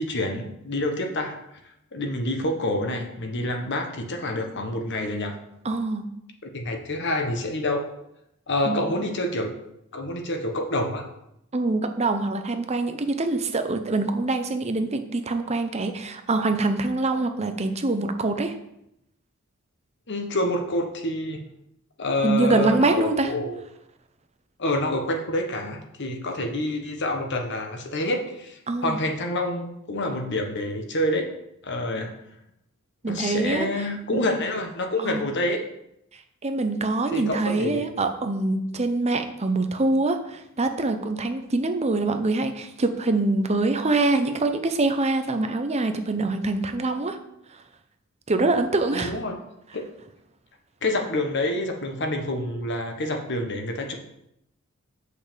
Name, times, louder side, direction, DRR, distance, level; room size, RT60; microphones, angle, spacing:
voice 1, 0.0-1.4 1.9-5.4 6.4-7.8 8.5-9.5 9.9-11.1 20.1-21.4 22.0-23.6 24.6-31.3 31.6-32.1 33.1-35.6 37.1-37.9 48.9-49.4 49.7-49.8 50.8-53.9, left 1 dB, 55° left, 4 dB, 1.3 m, -27 dB
voice 2, 5.6-6.0 8.7-8.9 11.5-18.5 22.2-23.3 28.7-29.0 33.0-33.8 34.1-34.2 35.0-35.2 36.4-47.2 48.3-49.1, right 2 dB, 30° right, 7 dB, 0.8 m, -24 dB
6.6 x 5.4 x 6.9 m, 0.81 s
head